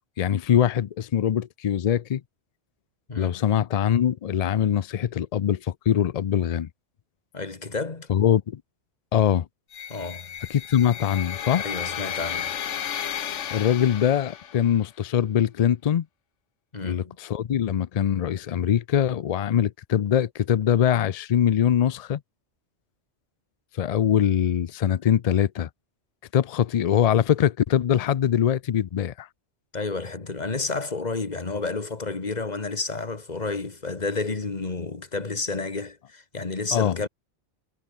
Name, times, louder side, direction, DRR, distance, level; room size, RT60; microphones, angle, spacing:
voice 1, 0.2-2.2 3.2-6.7 8.1-8.6 9.1-9.5 10.5-11.6 13.5-16.0 16.8-22.2 23.7-25.7 26.3-29.3 36.7-37.0, left 9 dB, 60° left, 0.4 m, -23 dB
voice 2, 3.1-3.5 7.3-8.1 9.9-10.3 11.6-12.5 16.7-17.2 29.7-37.1, left 3 dB, 35° left, 1.8 m, -31 dB
sound 1, 9.7-14.8, left 9 dB, 80° left, 1.3 m, -33 dB
omnidirectional pair, 1.2 m